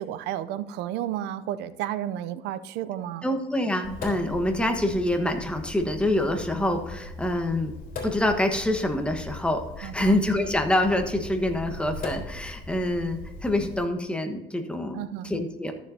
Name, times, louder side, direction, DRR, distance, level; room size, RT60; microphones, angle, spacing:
voice 1, 0.0-3.3 9.8-10.2 14.9-15.3, right 11 dB, 90° right, 14 dB, 0.6 m, -32 dB
voice 2, 3.2-7.7 8.0-15.7, left 1 dB, 5° left, 5 dB, 1.3 m, -26 dB
Sink (filling or washing), 3.8-13.8, left 2 dB, 55° left, 3.3 m, -39 dB
13.5 x 7.1 x 2.8 m, 1.1 s
cardioid pair, 110°, 17 cm